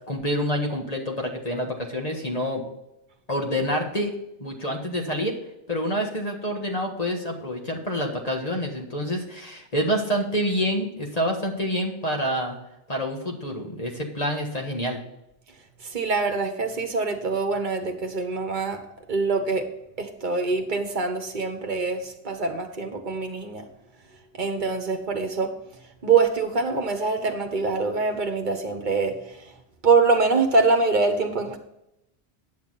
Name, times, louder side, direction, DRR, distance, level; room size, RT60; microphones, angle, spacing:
voice 1, 0.1-2.6 3.3-4.1 4.4-5.4 5.7-12.6 12.9-15.0, equal, 35° left, 1 dB, 1.6 m, -27 dB
voice 2, 15.8-18.8 19.1-19.7 20.0-23.6 24.3-25.5 26.0-29.5 29.8-31.6, right 4 dB, 50° right, 5 dB, 1.2 m, -24 dB
9.7 x 7.1 x 4.1 m, 0.86 s
omnidirectional pair, 1.1 m